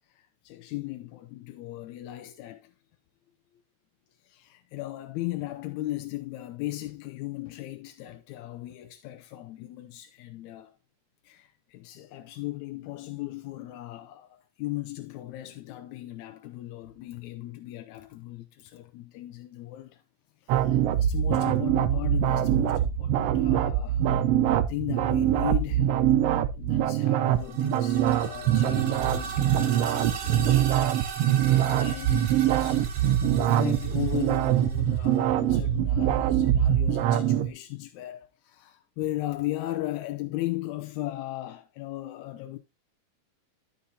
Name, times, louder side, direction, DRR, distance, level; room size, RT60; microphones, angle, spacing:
voice 1, 0.1-2.7 4.2-10.8 11.2-20.0 20.4-24.2 24.7-25.9 26.6-42.6, left 16 dB, 75° left, 1.8 m, -37 dB
sound 1, 20.5-37.5, right 11 dB, 85° right, 1.4 m, -24 dB
sound 2, 27.3-35.2, right 6 dB, 60° right, 2.1 m, -38 dB
13.0 x 5.6 x 2.7 m
omnidirectional pair, 3.7 m